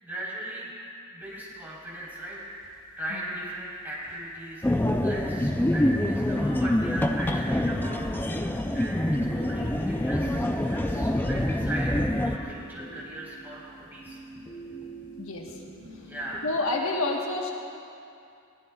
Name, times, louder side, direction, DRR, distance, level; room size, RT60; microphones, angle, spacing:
voice 1, 0.0-0.7 1.1-4.7 5.0-14.2 16.1-16.5, right 1 dB, 10° right, -7 dB, 4.1 m, -38 dB
sound 1, 1.2-16.5, right 1 dB, 25° left, 2.9 m, -46 dB
sound 2, 4.6-12.4, left 1 dB, 10° left, 0.5 m, -26 dB
voice 2, 15.2-15.6 16.4-17.5, left 2 dB, 80° left, 0 dB, 1.4 m, -29 dB
22.0 x 16.5 x 2.4 m, 2.5 s
head